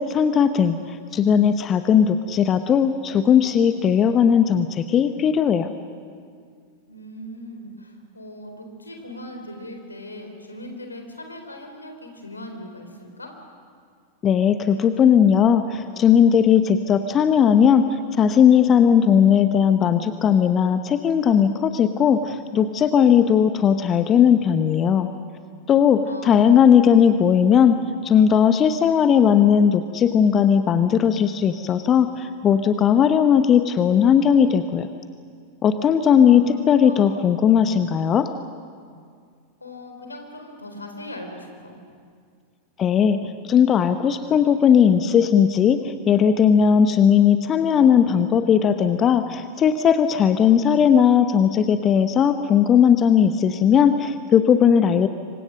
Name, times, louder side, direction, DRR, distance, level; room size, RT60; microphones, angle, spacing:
voice 1, 0.0-5.7 14.2-25.1 25.7-34.9 35.6-38.3 42.8-55.1, left 8 dB, 25° left, 10 dB, 0.9 m, -17 dB
voice 2, 6.9-13.3 26.1-26.4 26.7-27.1 36.2-36.4 36.8-37.2 39.6-41.8, left 1 dB, 80° left, 4 dB, 3.9 m, -39 dB
27.0 x 24.5 x 6.5 m, 2.1 s
figure-of-eight pair, 90°, 0 cm